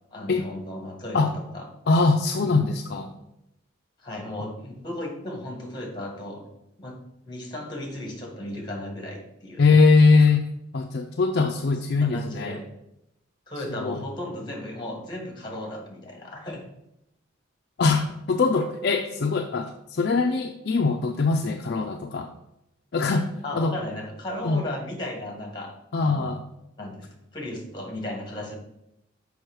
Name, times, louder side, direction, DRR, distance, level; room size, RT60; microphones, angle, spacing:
voice 1, 0.1-1.7 4.0-6.4 6.8-7.0 7.2-9.7 11.9-12.6 13.5-16.6 23.4-25.7 26.0-26.3 26.8-28.5, left 1 dB, 20° left, 1 dB, 1.6 m, -35 dB
voice 2, 1.9-3.2 9.6-10.4 10.7-12.6 13.8-14.0 17.8-22.3 22.9-23.8 24.4-24.6 25.9-26.4, left 4 dB, 55° left, 4 dB, 0.4 m, -22 dB
6.3 x 5.4 x 4.6 m, 0.84 s
head